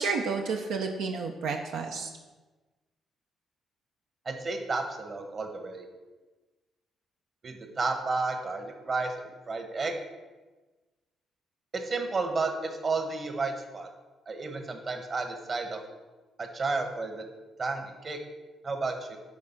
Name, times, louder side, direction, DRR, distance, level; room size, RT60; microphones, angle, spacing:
voice 1, 0.0-2.1, right 4 dB, 85° right, 2 dB, 0.7 m, -31 dB
voice 2, 4.2-5.9 7.4-9.9 11.7-13.9 14.3-15.8 16.4-17.2 17.6-18.2 18.6-19.2, right 3 dB, 40° right, 4 dB, 1.3 m, -32 dB
9.5 x 3.7 x 5.9 m, 1.2 s
cardioid pair, 90°, 0 cm